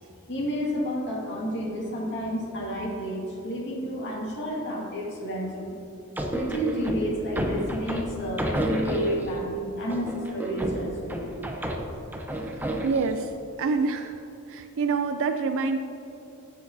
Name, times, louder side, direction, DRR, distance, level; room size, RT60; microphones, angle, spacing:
voice 1, 0.3-5.8 6.3-11.3, equal, 55° left, -3 dB, 2.0 m, -30 dB
sound 1, 6.2-9.4 9.9-13.2, right 1 dB, 10° right, 0.7 m, -30 dB
voice 2, 12.8-13.3 13.6-14.2 14.5-15.8, right 4 dB, 65° right, 6 dB, 0.4 m, -26 dB
16.5 x 6.6 x 2.7 m, 2.8 s
head